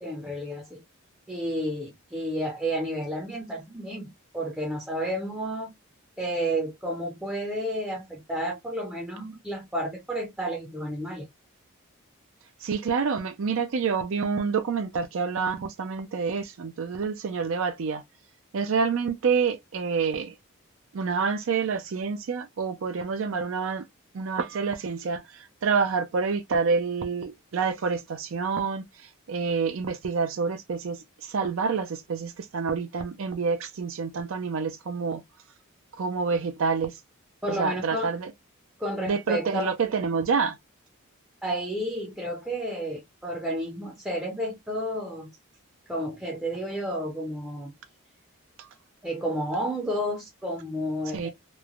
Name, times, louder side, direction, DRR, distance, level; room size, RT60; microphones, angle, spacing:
voice 1, 0.0-0.8 1.3-5.7 6.2-11.3 37.4-38.2 38.8-39.7 41.4-45.3 45.9-47.7 49.0-51.3, equal, 5° right, 0.5 m, -31 dB
voice 2, 12.6-18.0 18.5-20.3 20.9-23.9 24.1-35.2 36.0-37.0 37.5-38.3 39.0-40.6 48.6-48.7 51.1-51.3, right 5 dB, 65° right, 0.4 m, -28 dB
3.1 x 2.1 x 2.3 m
head